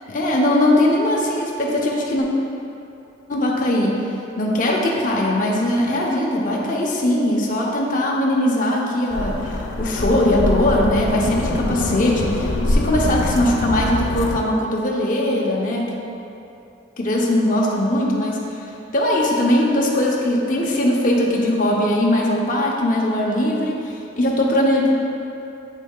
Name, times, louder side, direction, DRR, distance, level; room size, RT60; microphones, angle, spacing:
voice 1, 0.1-2.3 3.3-4.0 4.4-16.0 17.0-18.6 18.9-24.9, left 1 dB, 45° left, -2 dB, 0.7 m, -20 dB
sound 1, 9.1-14.3, left 2 dB, 85° left, 0.5 m, -23 dB
8.1 x 5.5 x 2.3 m, 2.8 s
head